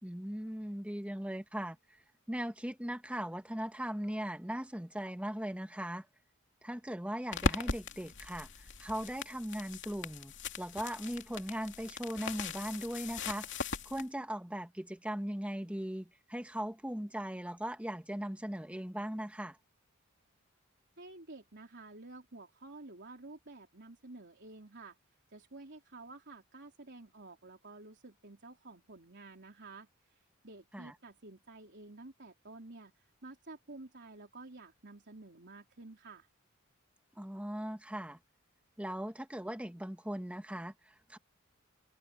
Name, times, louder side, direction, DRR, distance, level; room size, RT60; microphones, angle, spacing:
voice 1, 0.0-6.1 6.6-13.5 13.8-19.6 30.7-30.9 37.2-38.2 38.8-41.2, equal, 5° right, 1.4 m, -39 dB
sound 1, 7.3-14.0, left 4 dB, 60° left, 2.8 m, -39 dB
voice 2, 21.0-25.0 25.3-36.3, right 2 dB, 55° right, 3.8 m, -51 dB
head